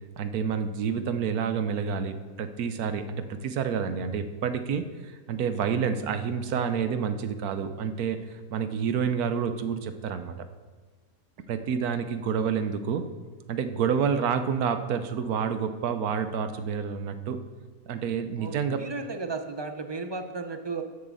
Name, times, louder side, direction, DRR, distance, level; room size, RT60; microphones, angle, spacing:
voice 1, 0.2-10.3 11.5-13.1 13.5-17.4 17.9-18.8, right 7 dB, 85° right, 9 dB, 1.3 m, -29 dB
voice 2, 18.4-20.8, right 4 dB, 35° right, 7 dB, 0.4 m, -34 dB
13.0 x 9.5 x 4.1 m, 1.4 s
omnidirectional pair, 1.5 m